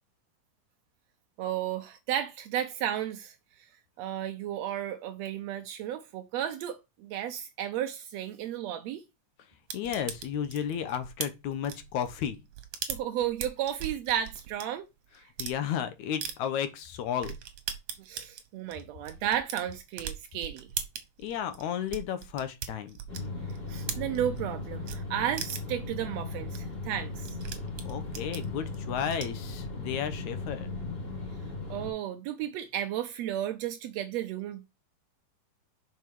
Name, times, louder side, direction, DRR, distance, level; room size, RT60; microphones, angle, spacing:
voice 1, 1.4-3.3 4.0-9.0 12.9-14.9 18.0-20.7 23.7-27.4 31.7-34.7, right 10 dB, 85° right, 1.5 m, -33 dB
voice 2, 9.7-12.4 15.4-17.4 21.2-23.0 27.8-30.7, left 9 dB, 70° left, 2.0 m, -33 dB
sound 1, 9.7-14.6 15.2-15.6 16.2-16.3 16.8-16.9 17.2-24.5 24.9-25.0 25.4-25.8 26.2-26.3 26.5-26.6 26.9-29.5, right 9 dB, 60° right, 2.0 m, -39 dB
sound 2, 23.1-31.9, left 3 dB, 20° left, 2.4 m, -37 dB
5.6 x 5.4 x 4.6 m
omnidirectional pair, 3.8 m